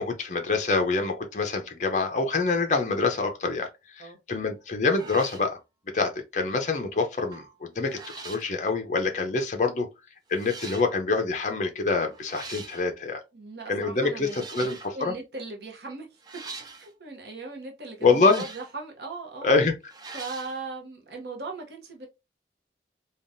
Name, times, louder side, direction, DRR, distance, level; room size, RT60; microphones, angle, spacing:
voice 1, 0.0-3.7 4.0-5.6 5.9-8.0 8.2-9.9 10.3-13.2 13.7-15.1 18.0-18.4 19.4-19.7, left 4 dB, 45° left, 0.5 m, -25 dB
sound 1, 4.4-4.6 4.9-5.5 7.2-7.5 7.8-8.5 9.5-9.6 10.3-10.9 12.1-12.9 14.2-15.0 16.2-16.9 18.0-18.8 19.9-20.6, right 4 dB, 25° right, 0.4 m, -43 dB
voice 2, 13.3-16.2 16.6-19.5 20.1-22.1, right 3 dB, 70° right, 0.8 m, -39 dB
3.4 x 2.3 x 2.5 m
head